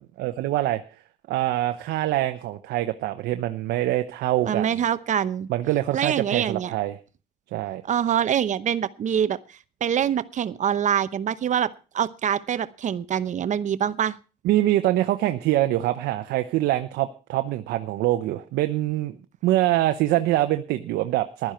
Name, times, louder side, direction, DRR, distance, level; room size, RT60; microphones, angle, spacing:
voice 1, 0.2-0.8 1.3-4.7 5.5-7.0 7.5-7.8 14.4-19.1 19.4-21.5, right 14 dB, 80° right, 8 dB, 0.9 m, -24 dB
voice 2, 4.4-5.5 5.9-6.7 7.9-11.7 11.9-14.2, right 9 dB, 45° right, 14 dB, 0.8 m, -25 dB
15.5 x 12.0 x 4.4 m, 0.34 s
cardioid pair, 110°, 17 cm